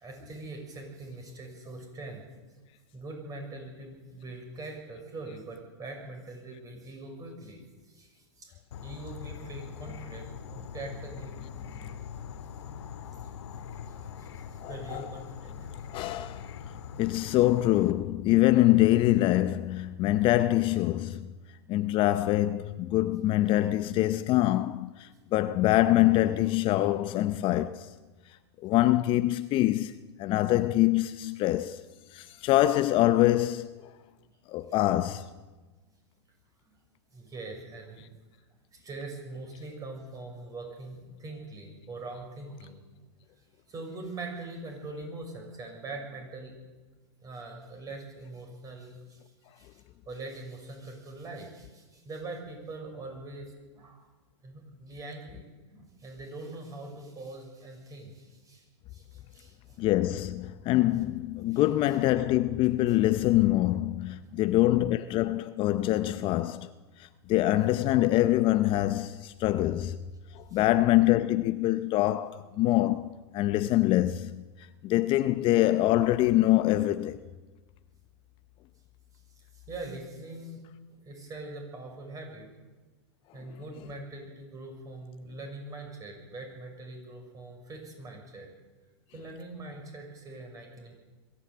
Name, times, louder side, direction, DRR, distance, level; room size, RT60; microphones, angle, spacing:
voice 1, 0.0-2.2 2.9-7.6 7.9-8.5 8.8-12.0 14.2-15.9 21.6-21.9 31.2-31.7 37.1-38.1 38.7-42.8 43.7-46.5 47.2-49.2 49.5-54.1 54.4-59.8 61.5-61.6 64.1-64.5 66.1-66.3 70.5-70.6 79.4-82.5 83.3-88.5 89.1-91.0, right 2 dB, 25° right, 6.5 m, -43 dB
Insect / Frog, 8.7-17.9, left 7 dB, 70° left, 1.8 m, -42 dB
voice 2, 14.6-15.3 15.9-16.5 17.0-21.3 21.7-27.9 28.6-29.9 30.2-31.8 32.1-33.7 34.5-35.3 59.8-66.7 67.3-70.0 70.4-74.4 74.8-77.2 83.8-83.9, left 15 dB, 35° left, 0.7 m, -25 dB
22.5 x 14.5 x 8.2 m
hypercardioid pair, 115°, 15 cm